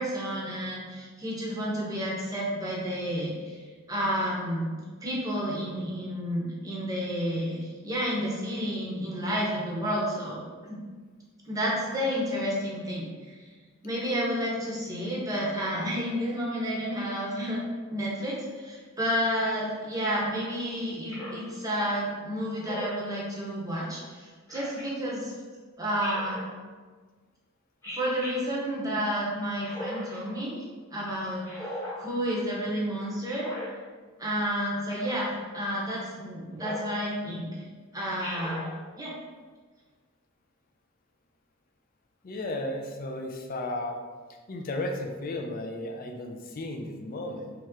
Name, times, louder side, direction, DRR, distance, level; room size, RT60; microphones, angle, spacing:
voice 1, 0.0-3.6 3.9-4.7 5.0-10.4 10.7-10.8 11.5-13.3 13.8-17.6 17.9-25.3 25.8-26.4 27.9-30.6 30.9-31.5 31.9-33.5 34.2-37.5 37.9-38.6 38.9-39.1, equal, 15° right, -5 dB, 0.8 m, -30 dB
Speech synthesizer, 21.1-21.5 22.6-23.1 24.5-24.9 26.0-26.5 27.8-28.4 29.6-30.2 31.4-32.0 33.3-33.7 34.9-35.2 36.6-36.9 38.2-38.7, left 1 dB, 10° left, 1.2 m, -38 dB
voice 2, 42.2-44.0 44.5-47.5, left 1 dB, 45° left, 3 dB, 0.4 m, -34 dB
3.1 x 2.9 x 3.6 m, 1.5 s
head